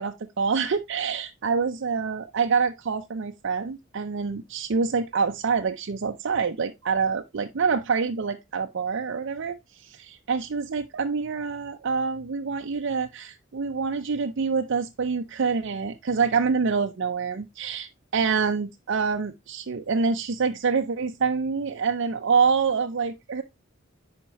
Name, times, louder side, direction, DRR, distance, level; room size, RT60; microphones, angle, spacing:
voice 1, 0.0-9.6 10.0-23.4, right 5 dB, 65° right, 0.5 m, -26 dB
10.0 x 4.4 x 3.0 m
head